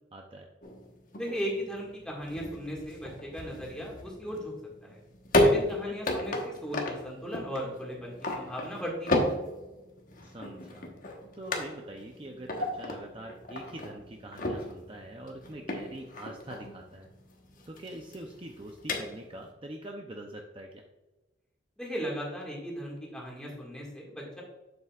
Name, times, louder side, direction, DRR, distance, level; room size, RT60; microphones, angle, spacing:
voice 1, 0.1-0.5 5.7-5.9 10.2-10.9 11.3-17.1 17.7-20.8, right 1 dB, 25° right, 2 dB, 0.5 m, -44 dB
sound 1, 0.6-19.5, left 1 dB, 45° left, 1.2 m, -33 dB
voice 2, 1.2-4.5 4.8-5.0 5.4-9.2 21.8-24.4, equal, 5° left, -3 dB, 1.8 m, -37 dB
8.3 x 7.6 x 2.4 m, 1.1 s
head